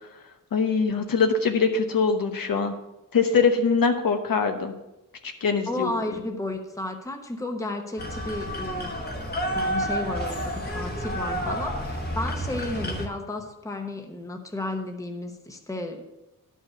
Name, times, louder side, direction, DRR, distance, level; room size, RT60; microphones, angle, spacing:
voice 1, 0.5-2.7 3.1-4.7 5.2-5.9, left 5 dB, 80° left, 5 dB, 1.1 m, -23 dB
voice 2, 5.7-8.9 9.5-16.0, left 2 dB, 10° left, 4 dB, 0.9 m, -33 dB
sound 1, 8.0-13.1, equal, 30° left, 1.3 m, -30 dB
11.5 x 5.5 x 5.8 m, 0.95 s
wide cardioid pair, 165°, 34 cm